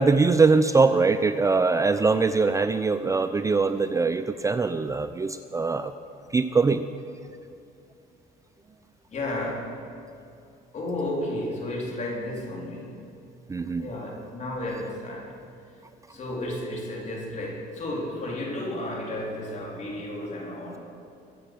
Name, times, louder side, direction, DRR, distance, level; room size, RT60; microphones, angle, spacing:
voice 1, 0.0-5.9 6.3-6.8 13.5-13.9, right 4 dB, 20° right, 10 dB, 0.5 m, -22 dB
voice 2, 9.1-9.8 10.7-12.9 13.8-15.3 16.1-20.8, left 1 dB, 45° left, -1 dB, 3.9 m, -32 dB
22.0 x 7.9 x 6.2 m, 2.5 s
cardioid pair, 110°, 17 cm